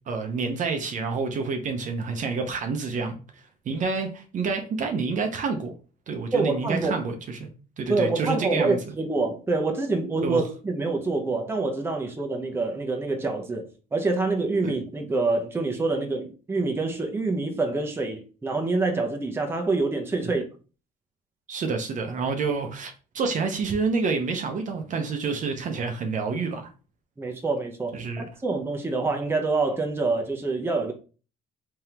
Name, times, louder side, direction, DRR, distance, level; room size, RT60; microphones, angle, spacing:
voice 1, 0.1-3.2 3.7-5.7 6.1-7.5 7.8-8.9 10.2-10.4 14.6-14.7 20.2-20.3 21.5-26.7 27.9-28.3, right 4 dB, 50° right, 0.8 m, -28 dB
voice 2, 6.3-6.9 7.9-20.5 27.2-30.9, right 3 dB, 15° right, 0.7 m, -26 dB
3.5 x 3.4 x 2.9 m
cardioid pair, 110°, 17 cm